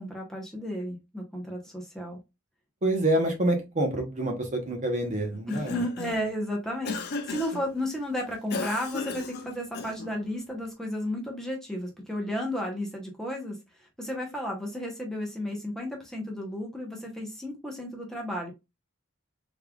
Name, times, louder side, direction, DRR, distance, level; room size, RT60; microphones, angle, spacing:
voice 1, 0.0-2.2 5.5-18.5, left 1 dB, ahead, 0 dB, 0.9 m, -33 dB
voice 2, 2.8-5.8, right 1 dB, 35° right, 3 dB, 0.9 m, -27 dB
Cough, 5.3-6.3 6.9-7.7 8.5-10.2, left 4 dB, 50° left, 0.6 m, -36 dB
3.5 x 3.2 x 2.3 m, 0.23 s
head